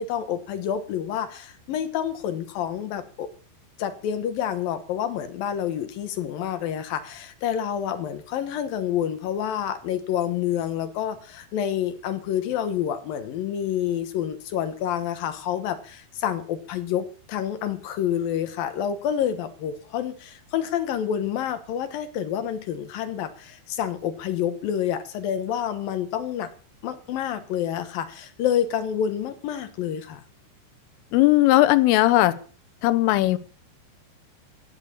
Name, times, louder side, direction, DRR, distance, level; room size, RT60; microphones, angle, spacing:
voice 1, 0.0-3.3 3.8-26.5 26.8-30.2, left 9 dB, 70° left, 9 dB, 2.3 m, -28 dB
voice 2, 31.1-32.3 32.8-33.4, left 17 dB, 85° left, 14 dB, 3.5 m, -18 dB
16.5 x 7.9 x 8.6 m, 0.41 s
omnidirectional pair, 5.6 m